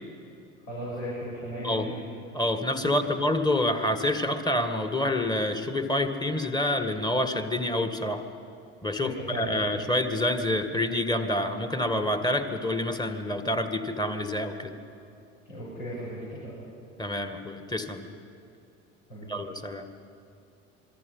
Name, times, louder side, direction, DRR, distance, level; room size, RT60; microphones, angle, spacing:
voice 1, 0.7-2.0 3.0-3.1 9.0-9.7 15.5-16.5 19.1-19.3, right 1 dB, 75° left, -8 dB, 7.1 m, -36 dB
voice 2, 1.6-2.0 2.3-8.2 8.8-14.8 17.0-18.1 19.3-19.9, left 1 dB, 10° left, 7 dB, 1.9 m, -27 dB
27.0 x 23.5 x 5.6 m, 2.8 s
figure-of-eight pair, 60°, 38 cm